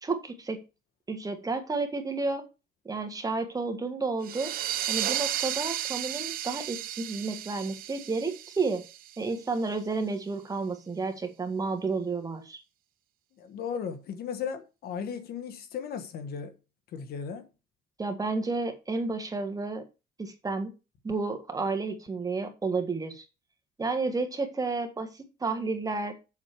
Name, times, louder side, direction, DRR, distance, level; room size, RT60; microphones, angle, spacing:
voice 1, 0.0-0.6 1.1-2.4 2.9-4.5 4.9-8.8 9.2-12.6 18.0-19.8 20.2-20.7 21.0-23.2 23.8-26.1, right 3 dB, 20° right, 1.7 m, -31 dB
sound 1, 4.2-9.5, right 12 dB, 60° right, 0.7 m, -34 dB
voice 2, 13.4-16.5 16.9-17.5, left 7 dB, 65° left, 1.3 m, -36 dB
7.4 x 6.2 x 4.6 m
cardioid pair, 110°, 17 cm